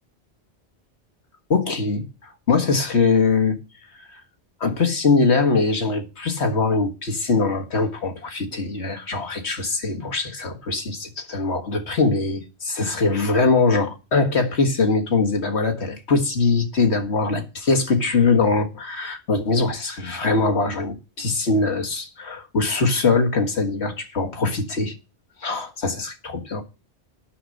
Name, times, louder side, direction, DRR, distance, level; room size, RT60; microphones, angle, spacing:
voice 1, 1.5-3.6 4.6-24.9 25.4-26.6, left 4 dB, 90° left, 1.9 m, -22 dB
9.9 x 6.4 x 7.7 m
omnidirectional pair, 1.1 m